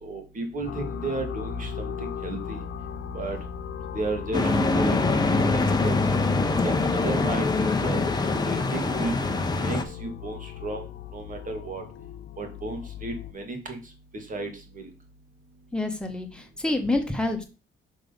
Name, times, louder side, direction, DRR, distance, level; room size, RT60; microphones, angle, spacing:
voice 1, 0.0-2.6 3.1-3.4 3.9-6.0 6.5-8.0 8.5-9.2 9.6-10.9 11.1-11.8 12.4-13.8 14.1-14.9, right 2 dB, 40° right, 4 dB, 2.0 m, -33 dB
sound 1, 0.7-13.3, left 7 dB, 65° left, 0.6 m, -37 dB
sound 2, 4.3-9.8, left 3 dB, 20° left, 0.8 m, -24 dB
voice 2, 15.7-17.4, left 2 dB, 5° left, 3 dB, 1.5 m, -27 dB
6.2 x 3.6 x 5.2 m, 0.32 s
cardioid pair, 90°, 20 cm